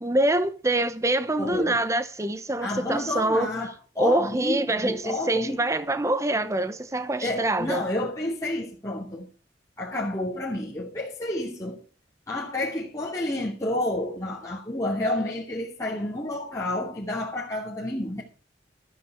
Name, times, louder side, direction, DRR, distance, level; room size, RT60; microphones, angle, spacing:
voice 1, 0.0-3.5 4.0-7.8, right 1 dB, 15° right, 0.9 m, -25 dB
voice 2, 1.4-1.8 2.6-5.6 7.2-9.3 9.8-11.8 12.3-18.2, left 1 dB, 20° left, 2.8 m, -30 dB
13.0 x 9.5 x 4.7 m
head